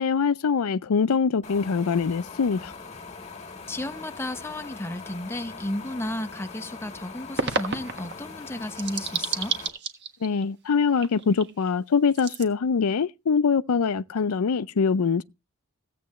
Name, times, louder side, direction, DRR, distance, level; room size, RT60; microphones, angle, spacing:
voice 1, 0.0-2.7 10.2-15.2, left 5 dB, 90° left, 0.5 m, -23 dB
sound 1, 1.4-9.7, left 4 dB, 30° left, 1.9 m, -42 dB
voice 2, 3.7-9.6, left 1 dB, 10° left, 0.8 m, -33 dB
sound 2, 7.4-8.1 8.6-10.4 10.8-11.7 12.1-12.4, right 5 dB, 50° right, 1.5 m, -30 dB
16.0 x 8.5 x 3.1 m
head